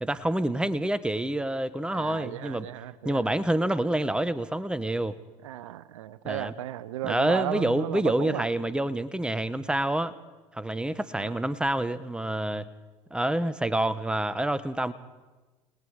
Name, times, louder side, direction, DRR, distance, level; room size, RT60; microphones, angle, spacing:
voice 1, 0.0-2.7 3.0-5.1 6.2-6.5 7.0-10.1 10.5-12.7 13.1-14.9, right 1 dB, 5° right, 15 dB, 1.1 m, -27 dB
voice 2, 1.9-3.3 5.4-8.5 11.2-11.3, right 12 dB, 85° right, 18 dB, 0.6 m, -34 dB
29.5 x 18.5 x 4.9 m, 1.2 s
hypercardioid pair, 70°, 16 cm